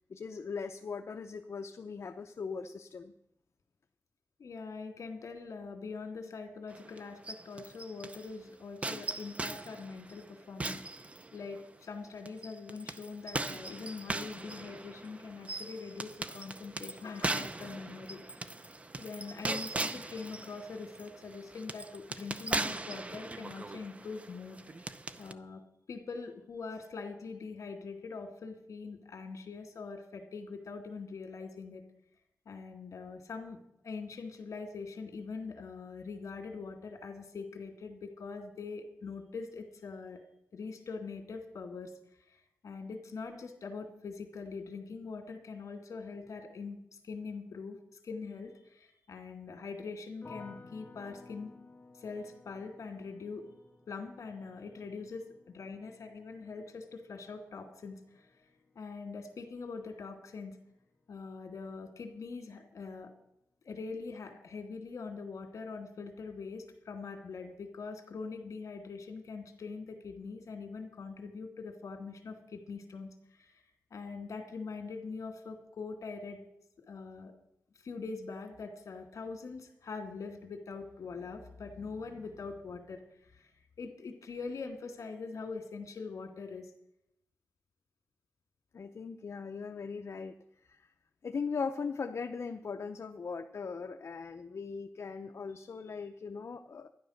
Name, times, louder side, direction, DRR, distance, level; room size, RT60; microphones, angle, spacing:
voice 1, 0.1-3.1 88.7-90.3 90.7-90.9 91.2-96.9, left 5 dB, 55° left, 5 dB, 0.7 m, -39 dB
voice 2, 4.4-11.0 11.3-18.4 19.0-24.6 25.2-25.6 25.9-31.8 32.5-33.6 33.8-40.2 40.5-41.9 42.3-46.8 47.0-47.8 48.0-51.5 52.0-53.4 53.9-58.3 58.8-60.6 61.1-63.1 63.6-73.6 73.9-76.4 76.9-77.3 77.8-83.5 83.8-86.7, left 4 dB, 70° left, 4 dB, 2.4 m, -43 dB
sound 1, 6.7-8.3 8.8-11.7 12.3-25.3, right 2 dB, 20° right, 0.6 m, -39 dB
sound 2, 50.2-61.3 61.6-62.3, left 3 dB, 30° left, 1.3 m, -57 dB
12.5 x 10.5 x 6.5 m, 0.79 s
wide cardioid pair, 130°, 6 cm